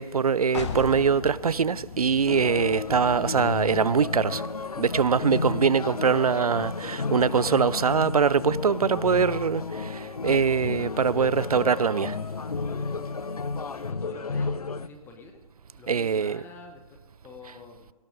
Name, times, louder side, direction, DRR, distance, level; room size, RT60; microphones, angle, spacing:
voice 1, 0.0-4.4 4.8-12.1 15.9-16.4, right 6 dB, 80° right, 0.5 m, -23 dB
sound 1, 0.5-6.1, left 6 dB, 50° left, 1.2 m, -40 dB
sound 2, 2.3-14.9, left 4 dB, 80° left, 0.6 m, -32 dB
voice 2, 13.7-15.4 15.7-17.9, left 4 dB, 10° left, 1.0 m, -47 dB
18.0 x 11.5 x 3.9 m
figure-of-eight pair, 135°, 19 cm